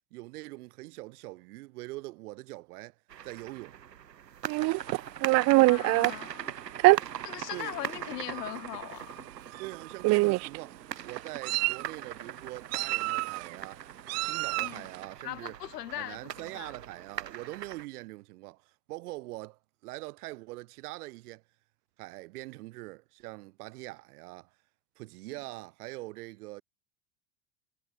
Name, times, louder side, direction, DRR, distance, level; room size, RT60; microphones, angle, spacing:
voice 1, 0.1-3.0 3.2-3.8 7.5-7.8 9.6-13.9 14.2-15.6 16.0-21.4 22.0-24.5 25.0-26.6, right 20 dB, 65° right, 3.8 m, -43 dB
sound 1, 3.1-17.9, right 9 dB, 85° right, 5.1 m, -41 dB
Meow, 4.5-6.1 6.8-7.0 7.8-8.0 8.3-8.5 9.6-9.7 10.0-10.6 11.2-11.9 12.7-13.5 14.1-14.8, right 23 dB, 35° right, 0.5 m, -24 dB
voice 2, 5.4-6.5 7.2-9.2 14.6-14.9 15.2-16.7, left 14 dB, 75° left, 3.9 m, -40 dB
hypercardioid pair, 90°, 48 cm